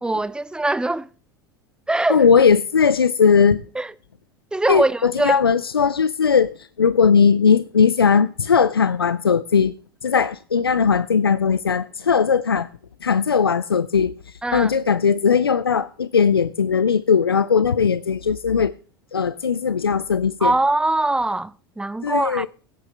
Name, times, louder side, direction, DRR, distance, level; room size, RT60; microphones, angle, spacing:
voice 1, 0.0-1.1 1.9-2.2 3.8-3.9 4.5-5.4 14.4-14.7 20.4-22.5, right 2 dB, 5° right, 0.5 m, -22 dB
voice 2, 2.1-3.6 4.7-9.7 10.0-12.7 13.0-18.7 19.1-20.5 22.0-22.5, left 6 dB, 85° left, 0.4 m, -18 dB
17.0 x 8.3 x 3.3 m
figure-of-eight pair, 75°, 12 cm